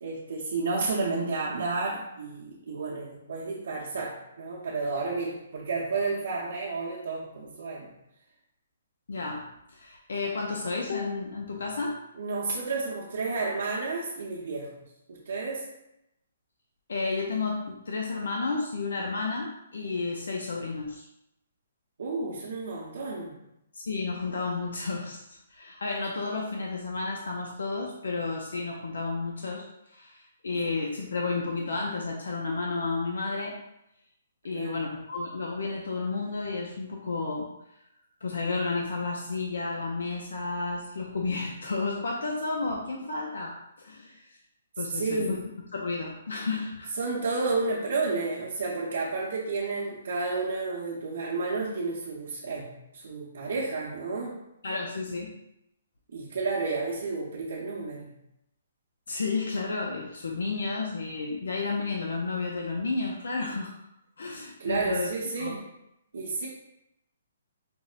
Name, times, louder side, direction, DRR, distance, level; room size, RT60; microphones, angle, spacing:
voice 1, 0.0-7.9 12.2-14.8 15.1-15.7 22.0-23.4 30.5-30.7 34.5-34.8 44.9-45.4 47.0-54.4 56.1-58.1 64.6-65.7 66.1-66.5, right 3 dB, 75° right, -6 dB, 0.7 m, -31 dB
voice 2, 9.1-12.0 16.9-21.1 23.7-33.6 34.4-37.5 38.2-44.2 44.8-45.4 45.7-46.9 54.6-55.3 59.1-63.8 64.2-65.1 65.4-65.6, left 3 dB, 80° left, -1 dB, 0.4 m, -32 dB
5.1 x 2.0 x 2.4 m, 0.85 s
hypercardioid pair, 155°, 0 cm